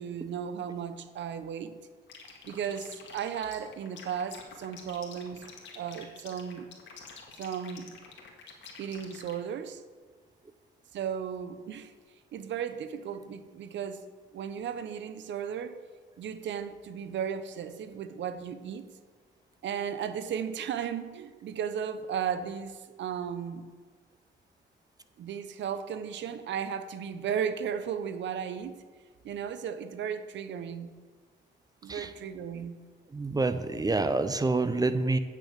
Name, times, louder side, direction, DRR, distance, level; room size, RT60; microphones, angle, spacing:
voice 1, 0.0-1.7 2.5-5.5 5.8-6.7 7.3-8.0 8.8-9.8 10.9-11.9 12.3-14.1 14.3-15.8 16.2-18.8 19.6-23.7 25.2-28.8 29.2-30.9 31.8-32.8, right 8 dB, 65° right, 11 dB, 0.7 m, -35 dB
sound 1, 2.1-9.4, left 6 dB, 70° left, 1.9 m, -48 dB
voice 2, 33.1-35.2, right 3 dB, 20° right, 11 dB, 0.6 m, -27 dB
8.5 x 6.6 x 6.5 m, 1.5 s
cardioid pair, 90°, 20 cm